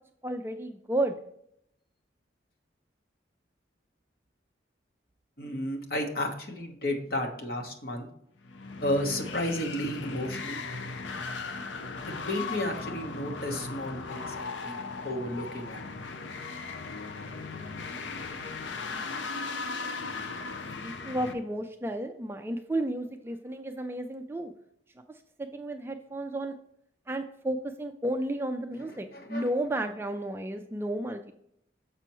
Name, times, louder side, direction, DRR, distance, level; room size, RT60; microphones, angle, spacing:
voice 1, 0.2-1.1 20.8-24.5 25.4-26.5 27.1-31.3, right 1 dB, 10° right, 5 dB, 0.3 m, -32 dB
voice 2, 5.4-8.1 8.8-10.6 12.0-14.8 15.0-15.8 28.8-29.4, left 1 dB, 50° left, 2 dB, 1.1 m, -33 dB
sound 1, 8.4-21.3, left 4 dB, 80° left, 0.6 m, -37 dB
6.8 x 5.7 x 3.0 m, 0.72 s
head